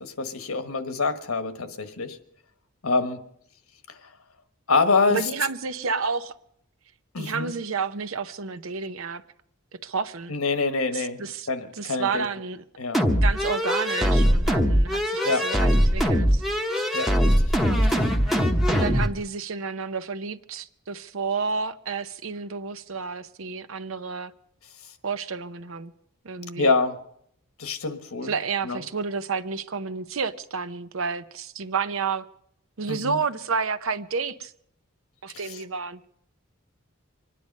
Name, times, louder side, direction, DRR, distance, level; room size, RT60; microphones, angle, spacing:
voice 1, 0.0-2.2 2.8-3.2 3.9-4.0 4.7-5.3 7.1-7.5 10.3-12.2 12.8-13.0 15.2-15.5 16.9-17.3 17.8-18.1 26.6-27.0 27.6-28.3 28.6-28.8 32.9-33.2 35.5-35.6, left 4 dB, 85° left, 1.3 m, -26 dB
voice 2, 5.1-6.3 7.2-9.2 9.7-10.3 10.9-11.5 11.7-12.6 13.2-16.4 18.7-24.3 25.0-25.9 26.2-26.7 28.2-32.3 32.8-34.5 35.2-36.0, right 5 dB, 70° right, 0.7 m, -30 dB
sound 1, 12.9-19.1, equal, ahead, 0.9 m, -21 dB
25.5 x 10.0 x 5.4 m
head